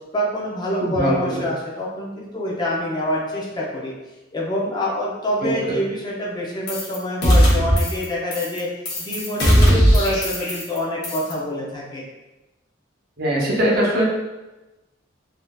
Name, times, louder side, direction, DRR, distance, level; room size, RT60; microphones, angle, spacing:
voice 1, 0.1-3.9 4.3-8.7 9.0-12.0, left 1 dB, 25° left, -5 dB, 0.6 m, -26 dB
voice 2, 0.8-1.4 5.4-5.8 13.2-14.1, right 1 dB, 55° right, -4 dB, 0.8 m, -21 dB
sound 1, 6.7-7.0 7.2-8.0 8.3-8.6 8.9-10.8 11.0-11.3, equal, 60° left, 0.9 m, -17 dB
3.5 x 2.7 x 2.3 m, 1.1 s
head